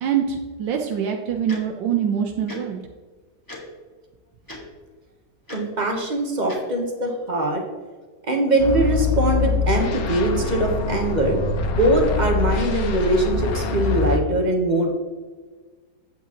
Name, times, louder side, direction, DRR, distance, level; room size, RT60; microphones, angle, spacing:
voice 1, 0.0-2.8, right 8 dB, 90° right, 3 dB, 1.5 m, -24 dB
Tick-tock, 1.5-1.6 2.5-2.6 3.5-3.6 4.4-4.6 5.5-5.6 6.5-6.6, left 2 dB, 10° left, 1.5 m, -37 dB
voice 2, 5.5-7.6 8.2-11.4 11.7-15.0, right 1 dB, 30° right, 2 dB, 1.2 m, -22 dB
sound 1, 8.6-14.2, left 5 dB, 60° left, 1.2 m, -24 dB
8.8 x 8.2 x 3.0 m, 1.4 s
omnidirectional pair, 1.9 m